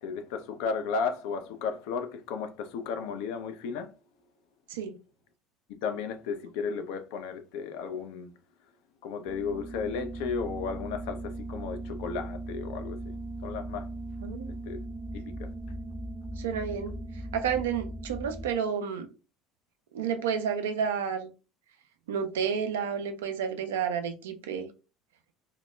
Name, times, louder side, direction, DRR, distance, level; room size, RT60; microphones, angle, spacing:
voice 1, 0.0-3.9 5.8-8.3 9.0-13.2 13.4-13.9 14.6-14.8 15.1-15.5, left 5 dB, 65° left, 0.3 m, -34 dB
sound 1, 9.3-18.5, right 2 dB, ahead, 0.4 m, -38 dB
voice 2, 14.2-14.5 16.4-16.9 17.3-19.1 19.9-21.3 22.1-24.7, right 7 dB, 75° right, 0.4 m, -30 dB
2.1 x 2.1 x 3.0 m
figure-of-eight pair, 65°, 0 cm